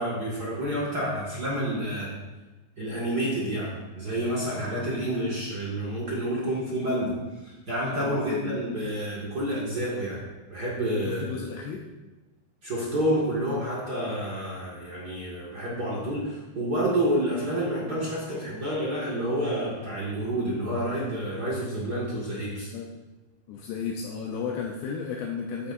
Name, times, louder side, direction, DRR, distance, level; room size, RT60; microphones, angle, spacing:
voice 1, 0.0-2.1 2.8-7.1 7.4-10.2 10.5-11.2 12.6-22.7, right 1 dB, 45° right, -6 dB, 1.2 m, -29 dB
voice 2, 8.1-8.6 11.0-11.8 22.7-22.9 23.5-25.7, left 6 dB, 75° left, -1 dB, 2.7 m, -34 dB
14.0 x 10.0 x 2.6 m, 1.1 s
omnidirectional pair, 5.1 m